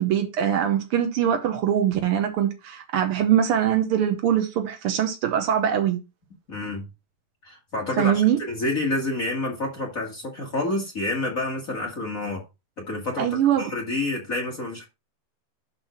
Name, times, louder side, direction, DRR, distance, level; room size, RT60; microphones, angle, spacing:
voice 1, 0.0-6.0 8.0-8.4 13.2-13.7, right 9 dB, 75° right, 1.2 m, -22 dB
voice 2, 6.5-6.8 7.4-8.2 8.5-12.4 12.8-14.9, left 2 dB, 30° left, 1.7 m, -28 dB
12.0 x 4.2 x 4.4 m
omnidirectional pair, 4.0 m